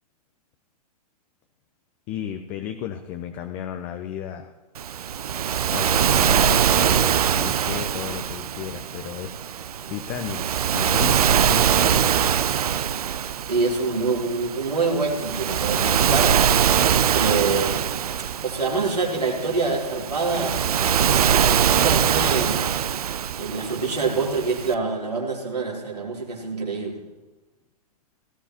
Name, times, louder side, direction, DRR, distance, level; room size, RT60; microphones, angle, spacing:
voice 1, 2.1-4.5 5.7-9.3 9.6-12.5, left 10 dB, 35° left, 7 dB, 0.8 m, -34 dB
Waves surf, 4.8-24.7, right 9 dB, 70° right, 0.6 m, -23 dB
voice 2, 13.5-16.7 17.1-17.8 18.4-20.6 21.1-22.6 23.4-27.0, right 4 dB, 90° right, -2 dB, 3.3 m, -26 dB
17.5 x 12.5 x 3.0 m, 1.1 s
figure-of-eight pair, 110°, 20 cm